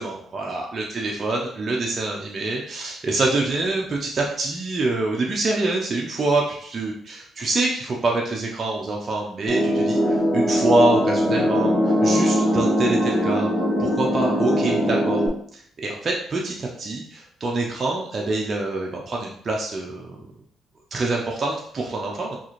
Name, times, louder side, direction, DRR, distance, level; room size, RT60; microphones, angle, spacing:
voice 1, 0.0-10.0 10.3-11.8 12.0-13.5 13.8-15.2 15.5-20.2 20.9-22.4, right 2 dB, 40° right, -1 dB, 0.6 m, -25 dB
sound 1, 9.5-15.3, equal, 5° right, 1.1 m, -21 dB
3.8 x 2.5 x 3.1 m, 0.62 s
cardioid pair, 90°, 0 cm